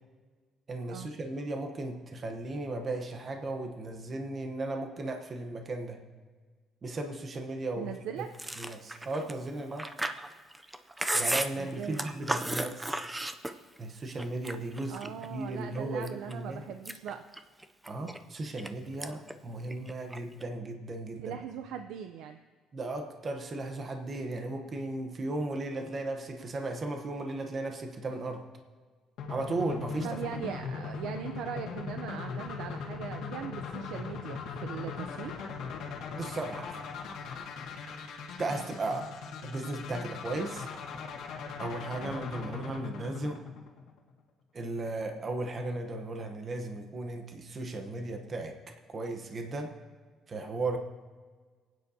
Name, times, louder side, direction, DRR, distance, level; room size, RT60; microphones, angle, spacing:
voice 1, 0.7-6.0 6.8-8.2 8.6-9.9 11.1-13.0 13.8-16.6 17.9-21.4 22.7-28.4 29.3-30.2 36.1-36.8 38.4-39.1 39.4-40.7 41.6-43.4 44.5-48.5 48.9-49.7 50.3-50.8, right 2 dB, 25° right, 4 dB, 0.9 m, -36 dB
voice 2, 7.8-8.3 11.6-12.1 14.9-17.2 21.2-22.4 30.0-35.3 38.5-38.6, right 8 dB, 85° right, 7 dB, 0.6 m, -40 dB
Chewing mastication, 8.3-13.8 14.2-15.3 15.7-16.3 16.7-18.7 19.0-19.3 19.6-20.4, right 1 dB, 5° right, 0.4 m, -34 dB
sound 1, 29.2-44.1, left 5 dB, 75° left, 1.5 m, -39 dB
27.5 x 9.3 x 2.8 m, 1.5 s
cardioid pair, 175°, 0 cm